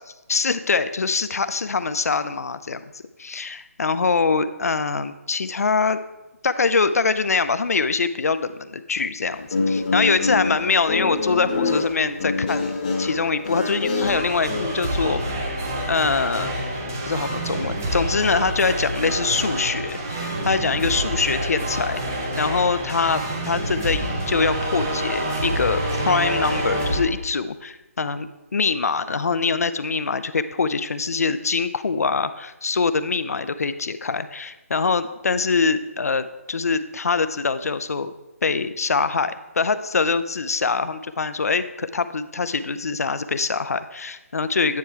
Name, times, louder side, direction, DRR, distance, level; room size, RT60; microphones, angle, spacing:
voice 1, 0.3-2.8 3.2-6.0 6.4-15.2 15.9-16.5 16.8-38.1 38.4-44.8, left 4 dB, 75° left, 12 dB, 0.5 m, -24 dB
Guitar, 9.3-14.6, left 3 dB, 30° left, 1.0 m, -25 dB
sound 1, 14.0-27.0, right 1 dB, 10° right, 0.4 m, -27 dB
9.3 x 4.4 x 4.6 m, 1.0 s
hypercardioid pair, 180°, 8 cm